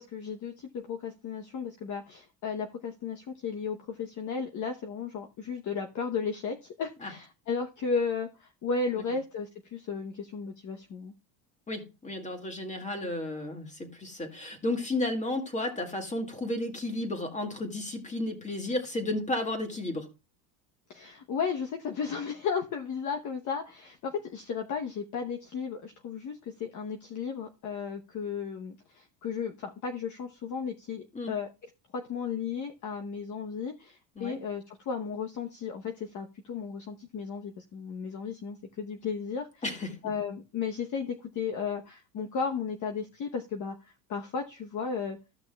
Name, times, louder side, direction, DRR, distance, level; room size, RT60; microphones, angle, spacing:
voice 1, 0.0-11.1 20.9-31.5 31.9-39.6 40.0-43.8 44.1-45.2, left 5 dB, 35° left, 1.0 m, -34 dB
voice 2, 11.7-20.1 31.1-31.3 34.2-34.4 39.6-40.0, left 2 dB, 15° left, 2.1 m, -33 dB
14.5 x 6.0 x 2.3 m
supercardioid pair, 115°, 49 cm